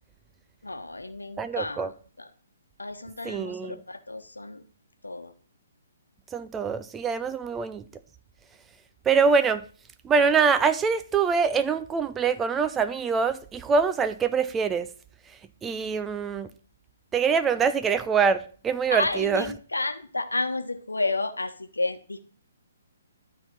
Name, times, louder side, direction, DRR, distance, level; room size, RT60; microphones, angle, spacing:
voice 1, 0.6-1.9 2.2-2.3 2.8-4.6 5.0-5.3 18.9-22.2, left 2 dB, 80° left, 1.1 m, -31 dB
voice 2, 1.4-1.9 3.2-3.8 6.3-7.8 9.1-9.6 10.0-14.9 15.6-16.5 17.1-19.5, right 5 dB, 15° right, 0.4 m, -24 dB
12.0 x 4.1 x 6.0 m
figure-of-eight pair, 130°, 0 cm